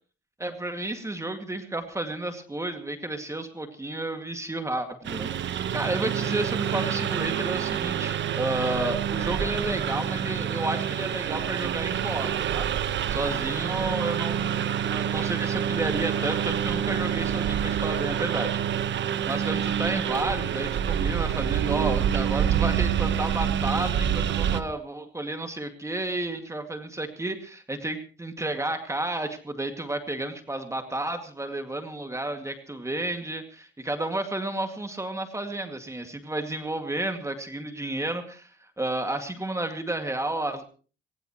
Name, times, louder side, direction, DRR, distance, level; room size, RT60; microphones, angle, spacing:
voice 1, 0.4-12.7 13.1-18.6 19.3-40.6, right 2 dB, 15° right, 6 dB, 2.2 m, -32 dB
Engine, 5.0-24.6, right 9 dB, 65° right, 1.2 m, -27 dB
21.0 x 19.0 x 3.1 m, 0.38 s
cardioid pair, 90°, 20 cm